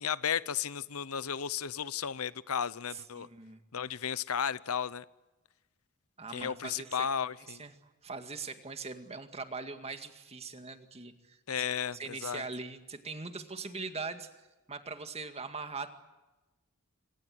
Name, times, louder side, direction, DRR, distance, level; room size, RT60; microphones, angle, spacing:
voice 1, 0.0-3.3 3.7-5.0 6.3-7.6 11.5-12.4, left 8 dB, 90° left, 18 dB, 0.8 m, -34 dB
voice 2, 2.9-3.6 6.2-7.1 7.5-7.7 8.0-14.3 14.7-16.0, right 4 dB, 30° right, 7 dB, 2.1 m, -41 dB
26.5 x 25.5 x 7.8 m, 1.1 s
head